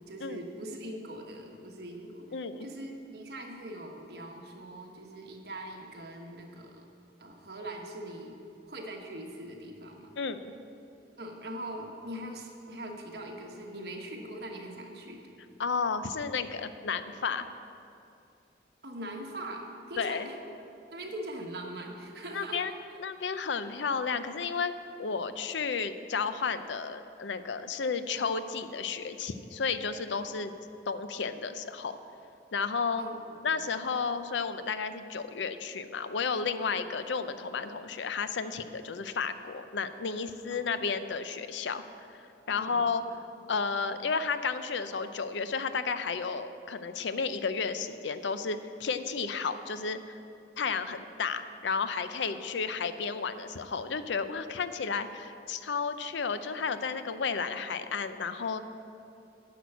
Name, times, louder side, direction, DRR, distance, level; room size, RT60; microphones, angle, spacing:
voice 1, 0.0-2.3 2.6-6.9 7.2-8.4 8.7-10.1 11.2-15.3 18.8-20.3 20.9-22.6 33.0-33.7 40.5-40.6 42.5-42.8 52.2-52.3, right 1 dB, 60° right, 1 dB, 1.3 m, -42 dB
voice 2, 2.3-2.7 10.2-10.5 15.6-17.5 20.0-20.3 22.3-22.7 23.0-24.7 25.0-30.5 30.9-32.0 32.5-33.0 33.4-41.8 42.5-43.0 43.5-50.2 50.6-58.6, left 5 dB, 85° left, 11 dB, 0.5 m, -32 dB
10.5 x 6.2 x 8.1 m, 2.7 s
head